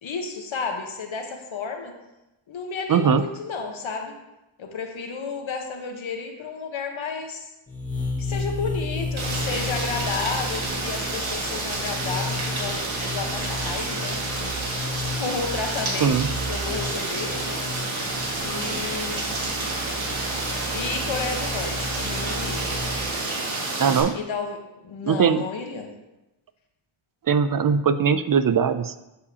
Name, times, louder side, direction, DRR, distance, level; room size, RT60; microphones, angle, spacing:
voice 1, 0.0-1.9 2.5-4.2 4.6-7.5 8.2-14.5 15.1-17.6 18.4-19.4 20.7-22.7 24.1-25.9, left 4 dB, 75° left, 4 dB, 1.2 m, -32 dB
voice 2, 2.9-3.2 16.0-16.3 23.8-24.1 25.0-25.4 27.3-29.0, right 6 dB, 45° right, 12 dB, 0.5 m, -20 dB
sound 1, 7.7-23.0, left 2 dB, 15° left, 1.6 m, -33 dB
Rain, 9.2-24.0, right 2 dB, 75° right, 1.9 m, -29 dB
11.5 x 4.9 x 2.8 m, 0.95 s
cardioid pair, 70°, 48 cm